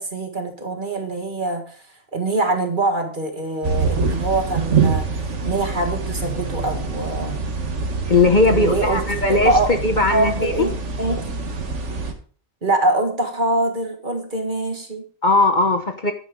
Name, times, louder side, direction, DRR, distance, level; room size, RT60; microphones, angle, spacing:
voice 1, 0.0-1.8 2.1-5.1 5.4-7.4 8.4-9.7 10.1-11.3 12.6-15.0, right 2 dB, 40° right, 1.8 m, -23 dB
sound 1, 3.6-12.1, right 4 dB, 65° right, 1.7 m, -25 dB
voice 2, 8.1-10.7 15.2-16.1, left 3 dB, 40° left, 1.1 m, -18 dB
10.5 x 9.8 x 3.7 m
omnidirectional pair, 1.3 m